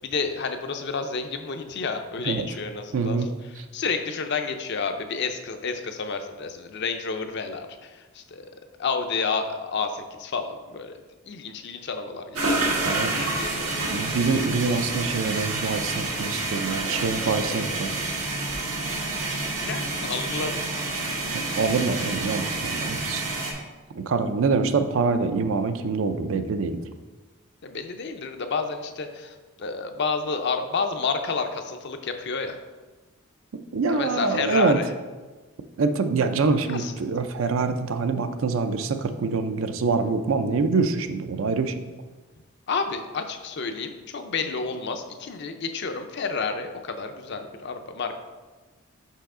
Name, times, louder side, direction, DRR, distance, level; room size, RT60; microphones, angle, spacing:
voice 1, 0.0-3.2 3.7-8.5 8.8-11.0 11.3-12.6 13.3-13.7 19.4-20.6 27.6-32.6 33.9-34.9 36.7-36.9 42.7-48.2, left 4 dB, 50° left, 7 dB, 0.5 m, -30 dB
voice 2, 2.9-3.6 12.9-13.1 13.9-17.9 21.3-23.2 24.0-26.8 33.7-34.8 35.8-41.8, right 4 dB, 65° right, 8 dB, 0.4 m, -25 dB
sound 1, 12.4-23.5, right 2 dB, 90° right, 1.4 m, -28 dB
5.6 x 5.5 x 3.7 m, 1.3 s
head